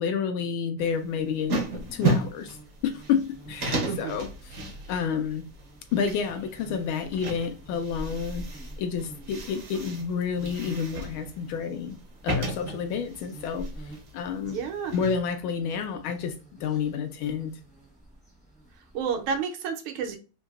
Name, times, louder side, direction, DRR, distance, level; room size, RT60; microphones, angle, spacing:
voice 1, 0.0-2.6 2.8-3.2 3.5-4.6 4.9-5.4 5.9-12.0 12.2-14.6 14.9-16.3 16.6-17.5, left 6 dB, 75° left, 1.3 m, -29 dB
sound 1, 0.8-15.2, right 2 dB, 60° right, 0.9 m, -34 dB
sound 2, 1.6-19.4, right 1 dB, 5° left, 0.5 m, -47 dB
voice 2, 3.8-4.2 14.5-14.9 18.9-20.2, right 6 dB, 80° right, 1.5 m, -30 dB
3.8 x 2.7 x 2.2 m
omnidirectional pair, 2.4 m